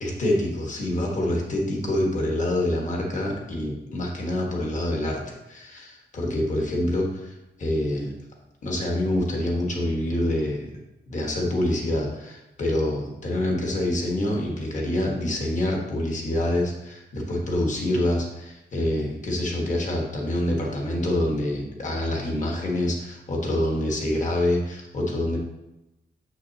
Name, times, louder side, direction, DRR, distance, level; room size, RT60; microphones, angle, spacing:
voice 1, 0.0-8.1 8.6-10.7 11.1-25.4, left 1 dB, 40° left, -1 dB, 1.5 m, -26 dB
6.6 x 6.3 x 2.8 m, 0.93 s
wide cardioid pair, 160°, 19 cm